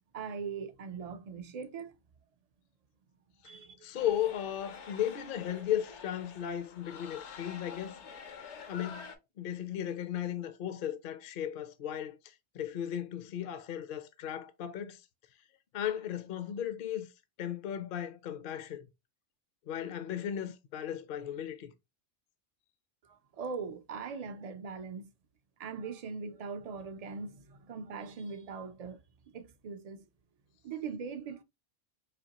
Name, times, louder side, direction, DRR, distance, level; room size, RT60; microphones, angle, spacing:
voice 1, 0.1-2.0 3.4-3.9 23.0-25.1 25.6-29.0 29.3-30.0 30.6-31.4, right 5 dB, 60° right, 0.4 m, -41 dB
voice 2, 3.8-8.0 8.7-9.1 9.4-15.0 15.7-17.1 17.4-18.9 19.7-21.7, left 10 dB, 60° left, 0.6 m, -36 dB
sound 1, 3.9-9.1, left 6 dB, 80° left, 1.1 m, -48 dB
4.2 x 2.9 x 2.8 m
omnidirectional pair, 1.2 m